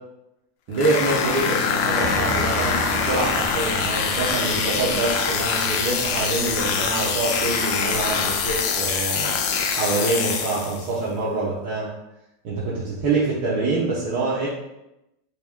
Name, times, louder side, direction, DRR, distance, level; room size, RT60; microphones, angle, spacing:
sound 1, 0.7-10.9, left 6 dB, 50° left, 0.5 m, -24 dB
voice 1, 0.7-9.4 9.7-11.9 12.4-14.5, right 3 dB, 45° right, -8 dB, 1.0 m, -25 dB
sound 2, 2.0-9.1, right 2 dB, 20° right, 0.4 m, -35 dB
3.4 x 2.9 x 3.7 m, 0.91 s
supercardioid pair, 150°, 0 cm